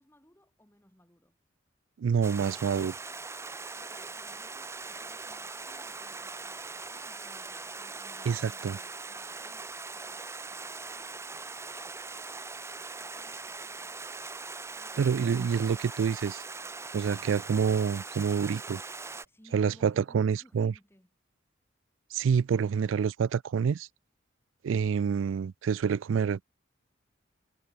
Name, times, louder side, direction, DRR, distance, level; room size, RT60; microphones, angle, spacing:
voice 1, 0.0-1.4 3.7-12.3 13.0-13.9 14.7-15.7 19.2-21.1, equal, 10° left, 5.8 m, -62 dB
voice 2, 2.0-2.9 8.3-8.8 15.0-16.4 16.9-18.8 19.5-20.7 22.1-23.9 24.6-26.4, right 6 dB, 80° right, 0.3 m, -27 dB
Stream, 2.2-19.3, right 3 dB, 15° right, 0.9 m, -41 dB
head